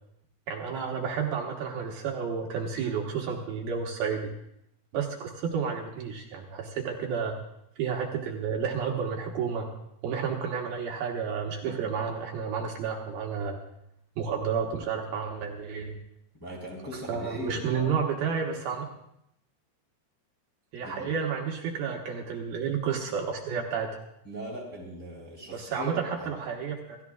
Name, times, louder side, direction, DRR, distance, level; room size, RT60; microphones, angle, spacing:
voice 1, 0.5-4.3 4.9-7.4 7.8-9.7 10.0-13.6 14.2-16.0 17.1-18.8 20.7-23.9 25.5-27.0, right 6 dB, 70° right, 0 dB, 2.9 m, -31 dB
voice 2, 16.4-17.9 20.8-21.1 24.2-26.3, equal, 5° left, -4 dB, 2.9 m, -39 dB
27.5 x 14.0 x 2.4 m, 0.77 s
omnidirectional pair, 4.7 m